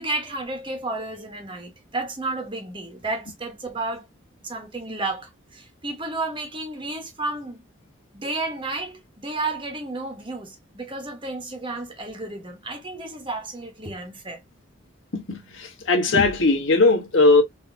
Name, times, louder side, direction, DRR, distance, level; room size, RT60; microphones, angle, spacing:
voice 1, 0.0-4.1 4.4-7.6 8.1-14.4, right 2 dB, 25° right, 1.0 m, -32 dB
voice 2, 15.1-17.4, left 3 dB, 75° left, 1.2 m, -19 dB
4.0 x 2.8 x 2.5 m
head